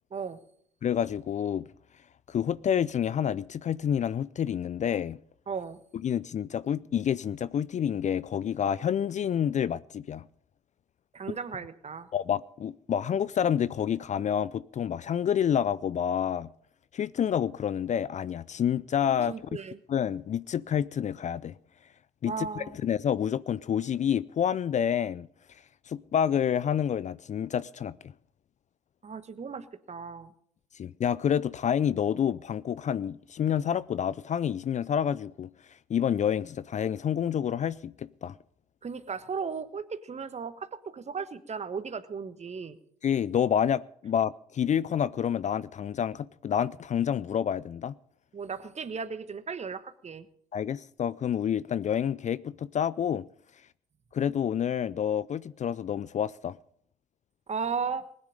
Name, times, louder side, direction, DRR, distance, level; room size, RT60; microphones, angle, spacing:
voice 1, 0.8-1.6 2.3-5.2 6.0-10.2 12.1-16.5 16.9-19.3 19.9-21.5 22.2-25.3 25.9-27.9 30.8-35.5 35.9-38.3 43.0-48.0 50.5-53.3 54.1-56.6, left 8 dB, 40° left, 0.5 m, -28 dB
voice 2, 5.5-5.8 11.1-12.1 19.3-19.8 22.3-22.8 29.0-30.3 38.8-42.8 48.3-50.3 57.5-58.0, right 5 dB, 35° right, 1.3 m, -36 dB
20.0 x 9.9 x 5.3 m
hypercardioid pair, 45°, 19 cm